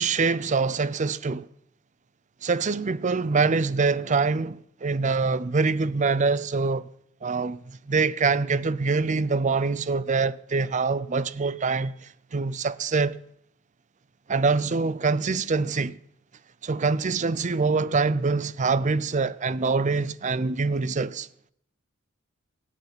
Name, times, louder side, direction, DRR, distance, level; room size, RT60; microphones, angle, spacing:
voice 1, 0.0-1.5 2.4-6.9 7.2-13.2 14.3-16.0 16.6-21.3, right 4 dB, 35° right, 0.5 m, -25 dB
18.5 x 7.3 x 9.6 m
head